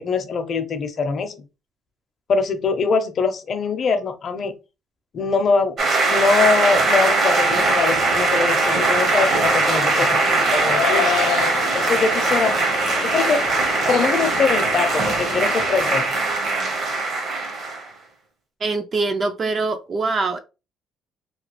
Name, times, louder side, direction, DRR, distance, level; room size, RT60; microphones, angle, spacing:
voice 1, 0.0-1.5 2.3-4.6 5.1-11.1 11.7-12.5 13.0-13.4 13.9-16.2, left 4 dB, 40° left, 0.6 m, -23 dB
sound 1, 5.8-17.9, right 3 dB, 50° right, 0.9 m, -20 dB
sound 2, 8.6-16.1, left 9 dB, 85° left, 0.3 m, -30 dB
voice 2, 18.6-20.4, right 3 dB, 30° right, 0.4 m, -23 dB
3.0 x 2.3 x 3.0 m
cardioid pair, 145°, 0 cm